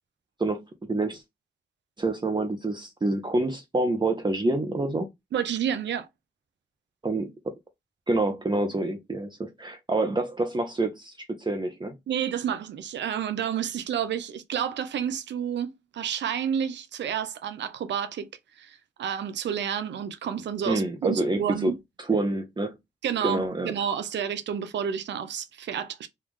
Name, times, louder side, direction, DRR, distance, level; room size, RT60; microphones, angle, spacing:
voice 1, 0.4-1.2 2.0-5.1 7.0-7.5 8.1-11.9 20.6-21.7 22.1-22.8 23.2-23.7, right 2 dB, 25° right, 0.7 m, -27 dB
voice 2, 5.3-6.1 12.1-18.2 18.6-21.8 23.0-26.1, right 8 dB, 80° right, 0.5 m, -30 dB
3.2 x 2.3 x 3.6 m
cardioid pair, 55°, 18 cm